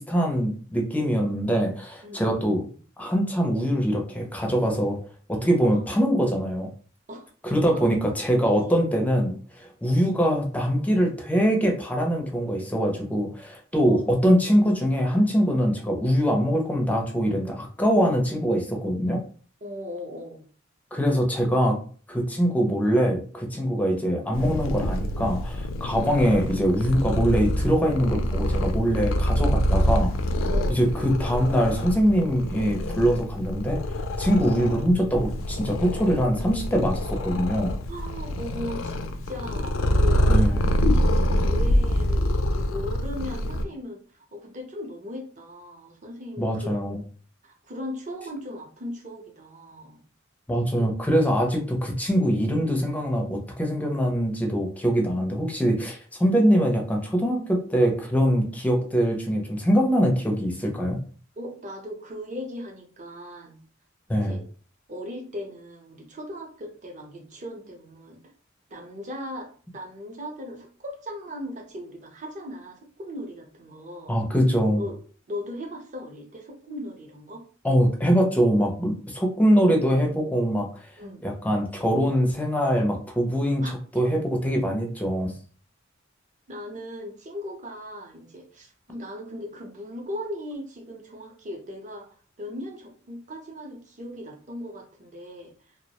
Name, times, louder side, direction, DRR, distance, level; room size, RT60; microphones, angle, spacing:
voice 1, 0.0-2.6 3.0-5.0 5.3-6.7 7.4-19.2 20.9-21.8 22.1-30.1 30.7-33.8 34.2-37.7 40.3-40.7 46.4-47.0 50.5-61.0 64.1-64.4 74.1-74.8 77.6-80.8 81.2-85.3, equal, 10° left, 1 dB, 0.4 m, -23 dB
voice 2, 2.0-2.8 5.7-5.8 7.1-7.3 7.7-7.8 8.7-8.8 13.8-14.1 19.6-20.4 30.5-30.8 37.9-47.0 47.4-50.0 50.7-50.9 61.4-63.6 64.2-64.5 64.9-68.2 68.7-74.2 74.8-75.0 75.3-77.4 81.0-81.3 83.6-83.7 86.5-92.1 92.4-95.5, left 1 dB, 40° right, 2 dB, 0.6 m, -38 dB
Purr, 24.3-43.6, equal, 75° left, 0.3 m, -26 dB
2.2 x 2.0 x 2.8 m, 0.42 s
head